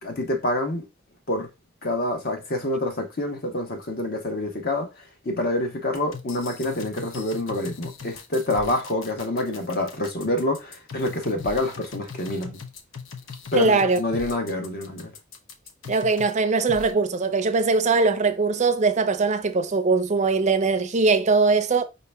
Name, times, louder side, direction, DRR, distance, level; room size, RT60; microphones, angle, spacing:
voice 1, 0.0-0.9 1.3-1.5 1.8-4.9 5.2-12.6 13.5-15.1, left 1 dB, 50° left, 1.1 m, -27 dB
sound 1, 5.9-16.4 16.7-16.9, left 5 dB, 75° left, 0.8 m, -40 dB
voice 2, 13.6-14.0 15.9-21.8, right 4 dB, 35° right, 0.5 m, -21 dB
5.3 x 2.9 x 3.4 m
head